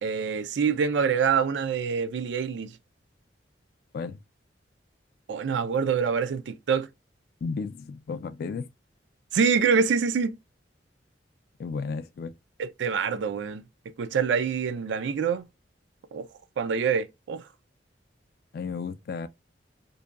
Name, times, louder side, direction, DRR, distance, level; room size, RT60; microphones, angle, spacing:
voice 1, 0.0-2.8 5.3-6.9 9.3-10.4 12.6-15.5 16.1-16.3 16.6-17.5, right 6 dB, 75° right, 0.4 m, -26 dB
voice 2, 7.4-8.7 11.6-12.3 18.5-19.3, left 5 dB, 55° left, 0.3 m, -33 dB
2.6 x 2.2 x 2.3 m
head